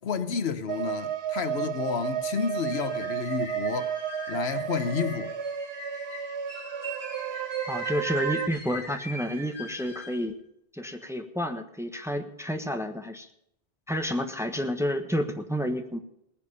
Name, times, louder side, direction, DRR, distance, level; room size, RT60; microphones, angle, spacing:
voice 1, 0.0-3.9 4.3-5.3, left 6 dB, 85° left, 1.2 m, -30 dB
sound 1, 0.7-8.5, right 9 dB, 85° right, 1.2 m, -32 dB
sound 2, 2.4-10.2, left 2 dB, 25° left, 4.4 m, -42 dB
voice 2, 7.6-10.4 10.7-13.3 13.9-16.0, equal, 5° right, 1.2 m, -30 dB
19.0 x 10.0 x 5.5 m
omnidirectional pair, 1.0 m